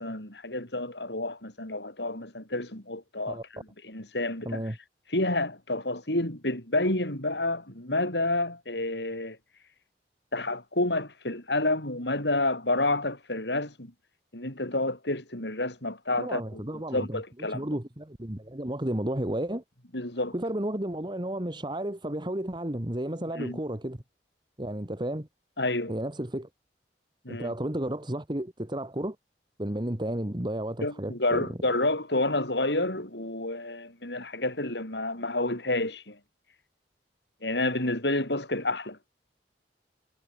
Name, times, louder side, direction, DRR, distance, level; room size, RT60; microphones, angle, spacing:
voice 1, 0.0-4.6 5.1-9.4 10.3-13.9 14.3-17.7 19.9-20.4 23.3-23.6 25.6-25.9 27.2-27.5 30.8-36.2 37.4-39.0, left 2 dB, 70° left, 6.7 m, -29 dB
voice 2, 4.4-4.8 16.2-17.2 17.5-19.6 20.3-24.0 24.6-25.3 25.9-26.5 27.3-29.2 29.6-31.6, right 1 dB, 25° right, 1.7 m, -32 dB
head